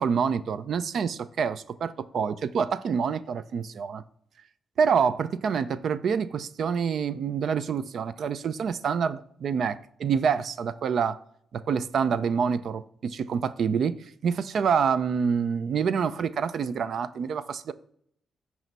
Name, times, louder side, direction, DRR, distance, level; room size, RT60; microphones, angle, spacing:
voice 1, 0.0-4.0 4.8-11.2 11.5-14.0 14.2-17.7, right 6 dB, 60° right, 0.4 m, -27 dB
9.1 x 3.1 x 5.4 m
cardioid pair, 140°, 0 cm